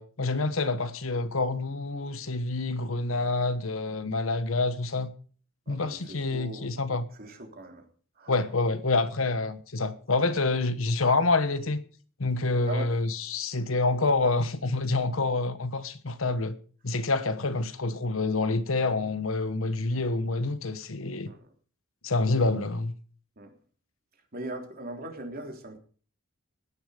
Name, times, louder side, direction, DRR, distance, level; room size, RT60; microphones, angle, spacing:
voice 1, 0.0-5.1 5.7-7.1 8.3-11.8 12.2-16.6 16.8-21.3 22.0-22.9, left 3 dB, 85° left, 1.3 m, -27 dB
voice 2, 5.7-7.9 8.2-8.3 12.6-12.8 21.2-21.5 23.4-23.5 24.3-25.8, right 1 dB, 50° right, 3.4 m, -40 dB
16.5 x 10.5 x 5.0 m
head